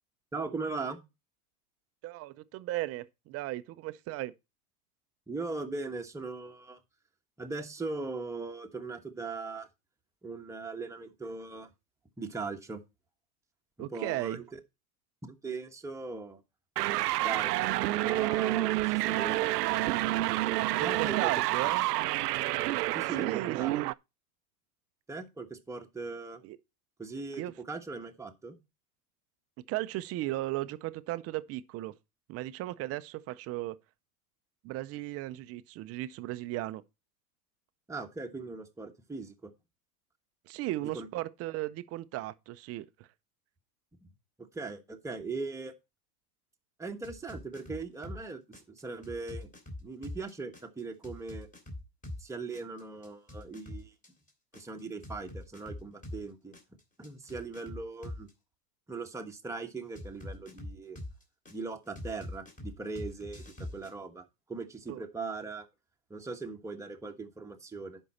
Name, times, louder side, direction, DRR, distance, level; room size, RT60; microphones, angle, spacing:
voice 1, 0.3-1.0 5.3-6.8 7.4-9.7 10.2-11.7 12.2-12.8 13.9-14.6 15.2-16.4 17.2-17.5 18.0-19.5 20.8-21.3 22.9-23.8 25.1-26.4 27.0-27.4 27.7-28.6 37.9-39.5 40.9-41.1 44.0-44.1 44.4-45.7 46.8-49.5 49.8-51.5 52.2-53.9 54.5-56.5 57.0-58.3 58.9-61.0 61.5-65.7 66.1-68.0, right 3 dB, 5° right, 1.2 m, -39 dB
voice 2, 2.0-4.3 13.8-14.4 20.7-21.9 23.2-23.9 26.4-26.6 27.4-27.5 29.7-32.0 32.3-33.8 34.6-36.8 40.5-42.9 64.9-65.0, right 16 dB, 30° right, 0.6 m, -36 dB
sound 1, 16.8-23.9, right 17 dB, 80° right, 0.6 m, -29 dB
sound 2, 47.0-48.2 48.5-52.2 52.5-56.2 56.5-58.3 60.0-61.5 62.0-63.9, left 1 dB, 15° left, 3.0 m, -43 dB
11.0 x 5.4 x 4.2 m
hypercardioid pair, 115°, 47 cm